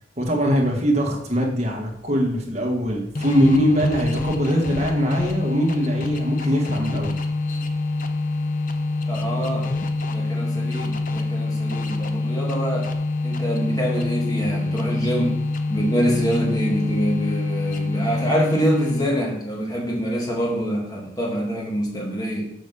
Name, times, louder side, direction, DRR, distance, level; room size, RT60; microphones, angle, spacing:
voice 1, 0.2-7.2, equal, 35° right, -1 dB, 1.8 m, -22 dB
sound 1, 3.2-19.3, left 2 dB, 45° left, 0.7 m, -25 dB
voice 2, 9.1-9.7 10.1-12.9 13.2-15.4 15.7-22.4, equal, 20° left, -3 dB, 1.9 m, -25 dB
6.2 x 5.2 x 6.9 m, 0.74 s
head